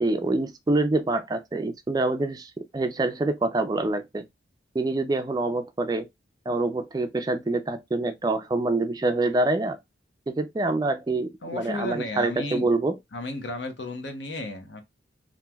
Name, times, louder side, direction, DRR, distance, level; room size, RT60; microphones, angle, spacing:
voice 1, 0.0-4.2 4.7-6.1 6.5-9.8 10.3-12.9, right 2 dB, 20° right, 0.3 m, -26 dB
voice 2, 11.4-12.7 13.1-14.8, left 2 dB, 70° left, 0.9 m, -33 dB
3.1 x 2.5 x 2.2 m
head